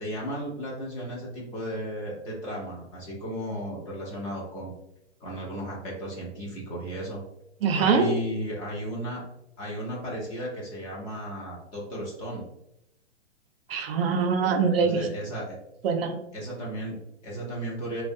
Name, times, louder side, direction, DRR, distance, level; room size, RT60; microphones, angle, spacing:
voice 1, 0.0-4.7 5.2-7.2 7.8-9.2 9.6-12.5 14.8-15.6 16.3-18.0, equal, 20° left, -4 dB, 0.4 m, -34 dB
voice 2, 7.6-8.1 13.7-15.1 15.8-16.2, right 5 dB, 55° right, 5 dB, 0.5 m, -23 dB
2.4 x 2.1 x 2.5 m, 0.83 s
hypercardioid pair, 130°, 35 cm